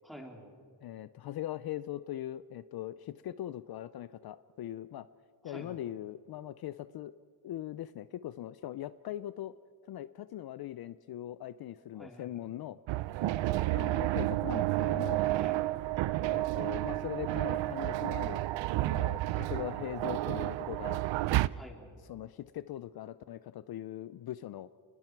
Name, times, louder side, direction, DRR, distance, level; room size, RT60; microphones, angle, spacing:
voice 1, 0.0-0.5 5.4-5.8 11.9-12.4 15.3-15.9 21.5-22.0, equal, ahead, 0 dB, 3.1 m, -49 dB
voice 2, 0.8-5.1 5.4-7.1 7.4-9.5 9.9-12.8 13.7-15.2 16.3-18.4 18.8-21.0 22.1-24.7, left 13 dB, 60° left, 14 dB, 0.5 m, -41 dB
sound 1, 12.9-21.5, right 16 dB, 85° right, 0.6 m, -31 dB
29.5 x 20.5 x 4.6 m, 2.2 s
wide cardioid pair, 160°, 43 cm